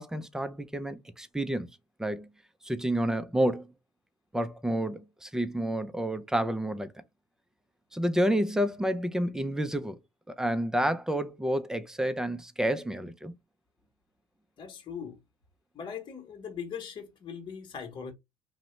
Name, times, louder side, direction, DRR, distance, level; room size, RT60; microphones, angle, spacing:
voice 1, 0.0-1.7 2.0-2.3 2.6-3.7 4.3-6.9 7.9-10.0 10.3-13.3, right 1 dB, 5° right, 0.4 m, -29 dB
voice 2, 14.6-15.2 15.7-18.1, left 7 dB, 40° left, 1.0 m, -40 dB
2.7 x 2.0 x 3.0 m
cardioid pair, 110°, 12 cm